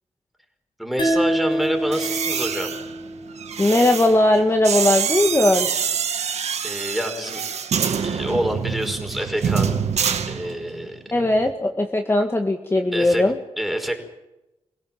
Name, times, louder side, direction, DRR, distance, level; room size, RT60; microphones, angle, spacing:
voice 1, 0.8-2.7 6.6-7.4 7.9-9.7 10.2-11.0 12.9-13.2 13.6-14.0, equal, ahead, 3 dB, 5.3 m, -27 dB
sound 1, 1.0-4.2, right 1 dB, 45° left, 4.9 m, -26 dB
sound 2, 1.8-10.9 11.2-11.5, right 7 dB, 85° right, 2.0 m, -26 dB
voice 2, 3.6-5.7 11.1-13.4, left 1 dB, 20° left, 4 dB, 1.9 m, -19 dB
27.0 x 17.0 x 7.6 m, 0.96 s
wide cardioid pair, 90°, 11 cm